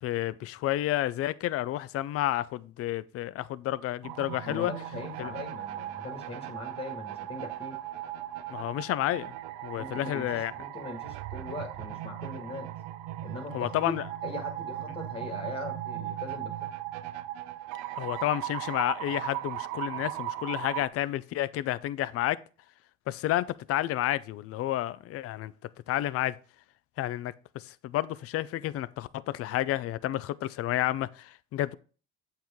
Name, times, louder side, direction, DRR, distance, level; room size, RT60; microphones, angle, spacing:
voice 1, 0.0-4.7 5.2-5.3 8.5-9.3 9.6-10.5 13.5-14.0 18.0-22.4 23.1-25.5 25.9-26.4 27.0-31.7, left 14 dB, 50° left, 0.5 m, -30 dB
sound 1, 4.0-20.9, right 13 dB, 75° right, 0.5 m, -38 dB
voice 2, 4.4-7.8 9.8-12.7 13.2-13.9 14.2-16.6, left 3 dB, 35° left, 1.9 m, -40 dB
7.7 x 4.6 x 3.6 m
supercardioid pair, 80°, 30 cm